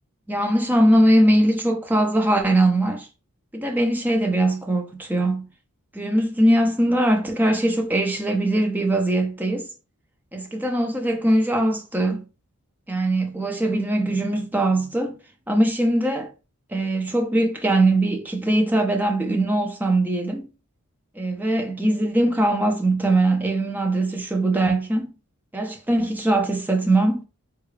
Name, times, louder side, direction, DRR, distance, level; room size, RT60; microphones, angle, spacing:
voice 1, 0.3-3.1 3.5-5.4 5.9-9.7 10.3-12.2 12.9-15.2 15.5-16.3 16.7-20.5 21.2-25.1 25.5-27.2, right 1 dB, 10° right, 0.5 m, -21 dB
3.7 x 2.3 x 3.1 m
head